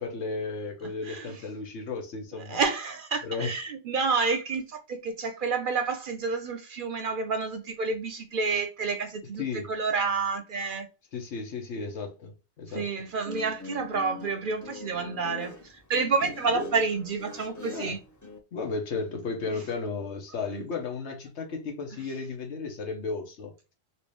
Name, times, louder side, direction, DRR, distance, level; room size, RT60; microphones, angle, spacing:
voice 1, 0.0-2.6 3.2-3.5 9.4-9.7 11.1-12.9 16.5-16.7 17.7-17.9 18.5-23.5, left 4 dB, 90° left, 1.3 m, -34 dB
voice 2, 1.0-1.4 2.5-10.9 12.7-18.0 19.5-19.6 20.5-20.6 21.9-22.0, right 4 dB, 60° right, 0.6 m, -29 dB
Guitar, 13.1-18.4, left 3 dB, 20° left, 0.5 m, -43 dB
3.2 x 2.8 x 3.2 m
omnidirectional pair, 1.1 m